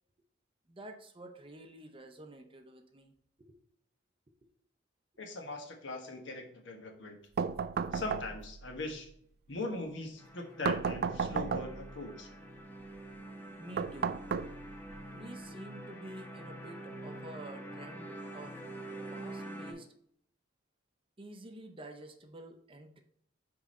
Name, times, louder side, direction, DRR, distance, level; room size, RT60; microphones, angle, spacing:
voice 1, 0.7-3.1 4.4-4.5 13.6-14.2 15.1-18.6 19.1-19.9 21.2-23.0, right 1 dB, 25° right, 5 dB, 0.7 m, -49 dB
voice 2, 5.2-7.2 7.9-9.1 9.5-12.3, left 2 dB, 65° left, 3 dB, 1.3 m, -40 dB
sound 1, 7.4-8.6 10.6-11.9 13.8-14.9, right 6 dB, 50° right, 0.3 m, -33 dB
sound 2, 10.2-19.7, right 1 dB, 10° left, 1.2 m, -46 dB
6.1 x 4.7 x 4.2 m, 0.66 s
head